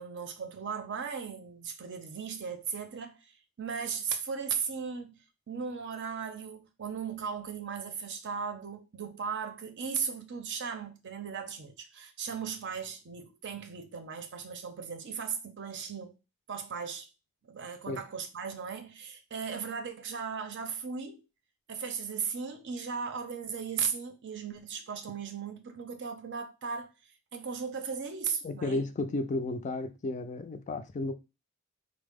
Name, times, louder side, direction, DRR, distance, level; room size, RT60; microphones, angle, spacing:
voice 1, 0.0-3.3 3.6-5.1 5.5-16.1 16.5-17.1 17.5-21.2 21.7-26.9 27.3-28.8, right 6 dB, 55° right, 0.6 m, -37 dB
voice 2, 28.4-31.1, left 2 dB, 35° left, 0.4 m, -33 dB
3.9 x 2.0 x 3.4 m
head